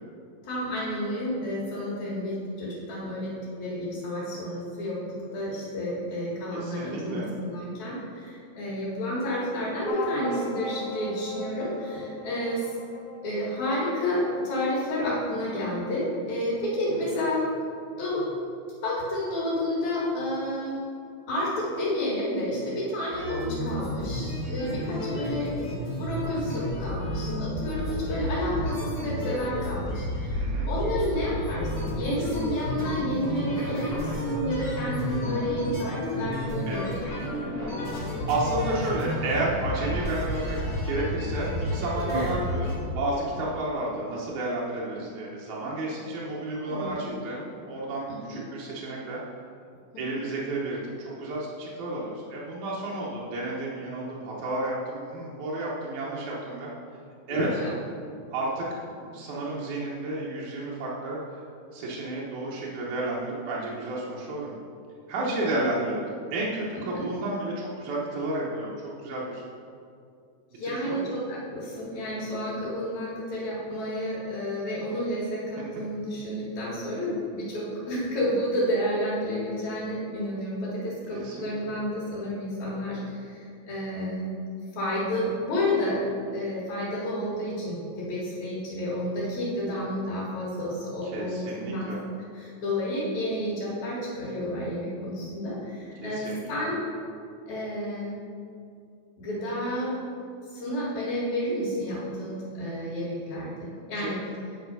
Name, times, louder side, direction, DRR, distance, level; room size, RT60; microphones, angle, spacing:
voice 1, 0.4-5.0 5.3-12.7 13.2-17.5 18.0-18.3 18.8-20.8 21.3-37.0 42.1-42.3 46.6-47.1 48.1-48.4 49.9-50.0 57.3-57.7 65.3-65.4 66.7-67.0 70.5-84.3 84.7-91.9 92.3-96.8 97.5-98.2 99.2-99.9 100.5-104.2, left 1 dB, 70° left, -8 dB, 3.1 m, -30 dB
voice 2, 6.5-7.3 23.6-23.8 30.3-30.7 36.7-36.9 38.3-40.6 40.9-49.2 50.0-56.7 57.3-57.6 58.3-61.4 61.7-64.6 65.1-68.8 69.0-69.4 70.6-71.1 75.6-75.7 81.1-81.7 91.0-92.0 96.0-96.5 104.0-104.1, right 2 dB, 80° right, -5 dB, 2.4 m, -31 dB
sound 1, 9.9-14.8, left 1 dB, 85° left, 1.0 m, -38 dB
sound 2, 23.1-42.8, equal, 30° left, 1.4 m, -31 dB
9.2 x 4.3 x 5.3 m, 2.4 s
omnidirectional pair, 3.4 m